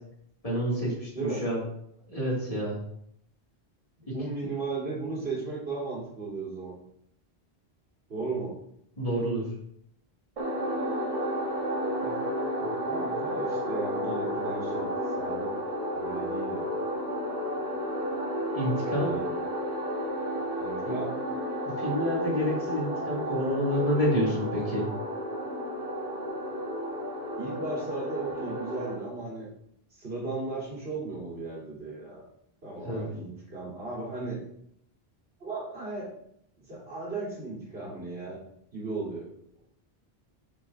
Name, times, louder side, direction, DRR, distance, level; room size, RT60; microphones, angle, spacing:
voice 1, 0.4-1.1 1.4-1.6 2.1-2.8 4.1-4.2 9.0-9.5 18.5-19.1 20.8-21.0 21.6-24.8 32.8-33.1, equal, 35° left, -5 dB, 2.2 m, -28 dB
voice 2, 4.1-6.8 8.1-8.5 12.0-12.2 12.6-14.9 15.2-15.5 15.9-16.7 18.9-19.3 20.6-21.1 27.4-29.5 29.9-32.2 32.6-34.4 35.4-36.1 36.6-38.4 38.7-39.3, right 3 dB, 85° right, -8 dB, 3.4 m, -35 dB
sound 1, 10.4-28.9, equal, 35° right, 1.2 m, -32 dB
7.2 x 6.6 x 2.5 m, 0.73 s
omnidirectional pair, 1.0 m